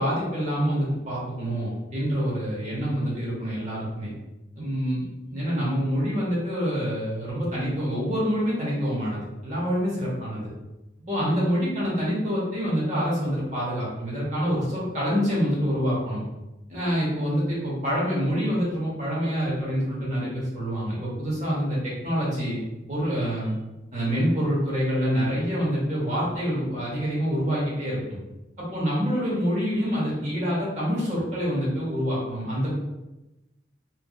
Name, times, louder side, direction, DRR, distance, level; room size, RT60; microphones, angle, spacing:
voice 1, 0.0-4.1 4.5-10.5 11.1-16.2 16.7-23.5 23.9-28.2 28.6-32.7, equal, 40° right, -6 dB, 1.0 m, -26 dB
2.6 x 2.5 x 2.4 m, 1.0 s
head